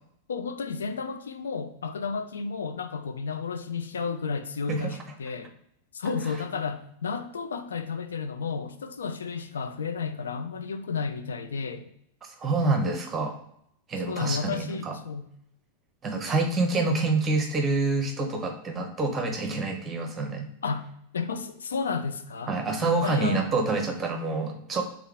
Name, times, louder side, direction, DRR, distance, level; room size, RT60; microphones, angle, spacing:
voice 1, 0.3-5.5 5.9-11.9 14.1-15.3 20.6-20.9 21.1-22.5 22.8-23.5, left 5 dB, 65° left, 8 dB, 0.4 m, -32 dB
voice 2, 12.2-13.4 13.9-15.0 16.0-20.5 22.5-24.8, right 3 dB, 20° right, 4 dB, 0.9 m, -27 dB
3.5 x 3.5 x 3.4 m, 0.72 s
figure-of-eight pair, 90°, 0 cm